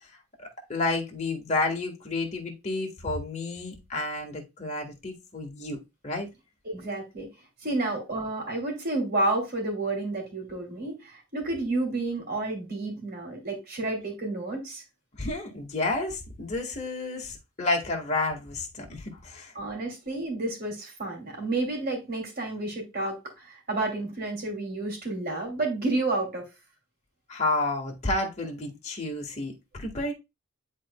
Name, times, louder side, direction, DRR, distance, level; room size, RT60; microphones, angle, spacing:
voice 1, 0.4-5.8 6.0-6.3 15.2-19.5 27.3-30.1, left 2 dB, 30° left, 1.7 m, -30 dB
voice 2, 6.6-7.3 7.6-14.8 19.5-26.4, right 2 dB, 45° right, 2.8 m, -30 dB
10.5 x 4.2 x 2.3 m
head